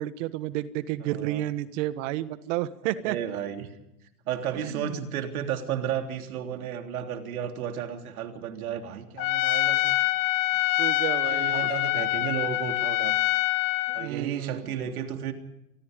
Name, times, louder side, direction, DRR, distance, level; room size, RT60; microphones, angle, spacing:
voice 1, 0.0-3.2 4.5-5.0 10.8-11.7 13.9-14.7, right 14 dB, 55° right, 14 dB, 1.5 m, -31 dB
voice 2, 1.0-1.4 3.0-3.7 4.3-10.0 11.2-13.2 13.9-15.3, right 9 dB, 70° right, 5 dB, 3.4 m, -33 dB
Trumpet, 9.2-14.1, left 17 dB, 45° left, 1.6 m, -25 dB
27.0 x 20.0 x 5.2 m, 0.86 s
hypercardioid pair, 110°, 44 cm